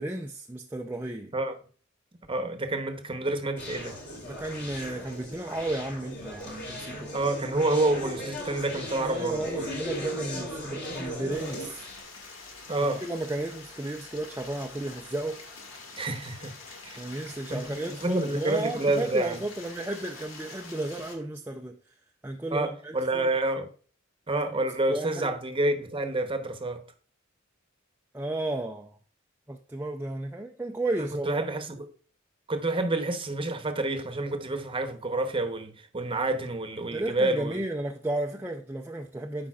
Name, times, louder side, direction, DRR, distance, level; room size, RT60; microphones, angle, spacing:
voice 1, 0.0-1.3 4.2-7.1 9.0-11.9 13.0-15.4 17.0-21.8 22.2-23.3 24.9-25.3 28.1-29.0 29.5-31.4 36.9-39.5, right 1 dB, 10° right, 0.5 m, -33 dB
voice 2, 2.3-4.0 7.1-9.8 12.7-13.0 15.9-16.5 16.8-17.0 17.5-19.4 22.5-23.7 24.3-26.8 31.2-31.9 32.5-37.6, right 2 dB, 25° right, 0.9 m, -28 dB
Conversation, 3.6-12.0, equal, 55° left, 3.3 m, -37 dB
Stream, 11.3-21.1, left 3 dB, 75° left, 2.0 m, -46 dB
13.0 x 5.1 x 2.4 m
head